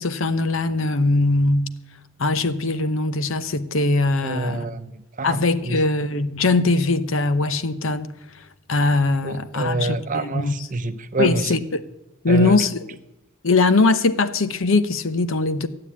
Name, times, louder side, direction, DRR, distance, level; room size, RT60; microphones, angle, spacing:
voice 1, 0.0-1.7 2.2-4.7 5.2-8.1 8.7-10.5 11.2-11.8 12.2-13.0 13.4-15.7, left 3 dB, 65° left, 0.8 m, -21 dB
voice 2, 4.2-5.4 5.6-5.8 9.2-11.6 12.3-12.6, right 3 dB, 35° right, 0.8 m, -27 dB
14.5 x 8.7 x 8.6 m
head